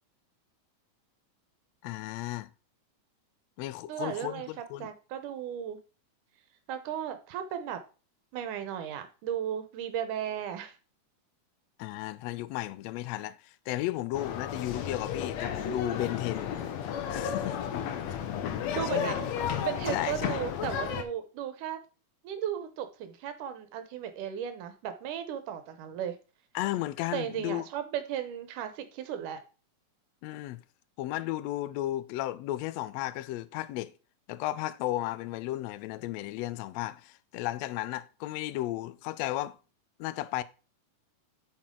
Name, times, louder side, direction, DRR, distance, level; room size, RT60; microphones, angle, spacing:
voice 1, 1.8-2.5 3.6-4.9 11.8-16.5 17.1-17.6 18.4-18.6 18.9-19.2 19.9-20.4 26.5-27.6 30.2-30.6 31.0-33.9 34.3-39.6 40.0-40.4, left 16 dB, 85° left, 1.5 m, -34 dB
voice 2, 3.9-4.5 4.8-5.8 6.7-7.8 8.3-10.8 18.7-19.2 19.6-21.8 22.2-26.2 27.1-29.4, right 9 dB, 80° right, 2.5 m, -35 dB
sound 1, 14.1-21.0, left 8 dB, 65° left, 1.9 m, -33 dB
8.6 x 6.1 x 3.8 m
omnidirectional pair, 3.6 m